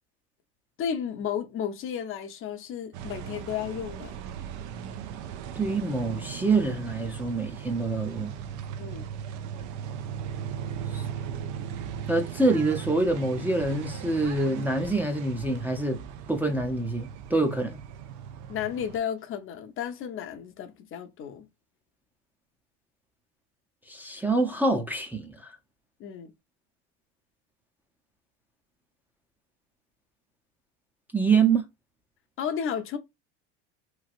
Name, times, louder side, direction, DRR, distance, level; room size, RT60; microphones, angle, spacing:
voice 1, 0.8-4.2 8.8-9.1 18.5-21.5 26.0-26.3 32.4-33.0, left 8 dB, 40° left, 0.7 m, -33 dB
sound 1, 2.9-19.0, right 8 dB, 55° right, 0.6 m, -38 dB
voice 2, 5.6-8.3 10.9-11.0 12.1-16.0 16.3-17.8 23.9-25.5 31.1-31.7, right 3 dB, 5° right, 0.6 m, -26 dB
3.1 x 2.8 x 2.4 m
supercardioid pair, 110°, 33 cm